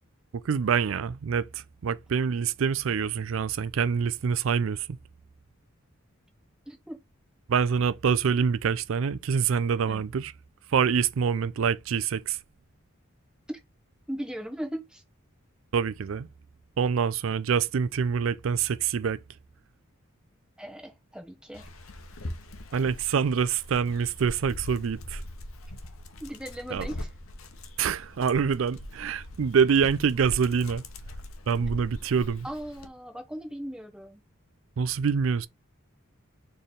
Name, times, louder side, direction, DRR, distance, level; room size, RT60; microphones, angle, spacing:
voice 1, 0.3-5.0 7.5-10.3 10.7-12.4 15.7-16.3 16.8-19.2 22.7-25.2 26.7-26.9 27.8-30.8 31.5-32.5 34.8-35.5, right 6 dB, 65° right, 0.4 m, -26 dB
voice 2, 6.7-7.0 9.9-10.0 13.5-13.6 14.1-15.0 20.6-21.6 26.2-27.1 32.4-34.2, equal, 5° right, 0.9 m, -38 dB
Dog, 21.5-32.9, left 1 dB, 75° left, 0.9 m, -41 dB
4.4 x 3.3 x 3.6 m
head